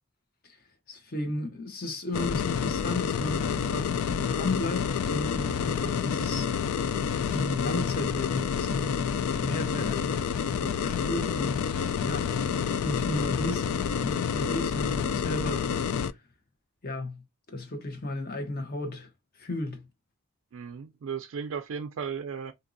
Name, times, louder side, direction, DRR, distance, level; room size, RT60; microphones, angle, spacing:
voice 1, 0.9-6.5 7.2-9.0 9.4-12.3 12.8-15.7 16.8-17.2 17.5-19.1 19.4-19.8, left 2 dB, 45° left, 0.8 m, -34 dB
sound 1, 2.1-16.1, left 7 dB, 90° left, 0.3 m, -29 dB
voice 2, 20.5-22.5, right 6 dB, 75° right, 0.4 m, -35 dB
3.9 x 2.6 x 2.5 m
head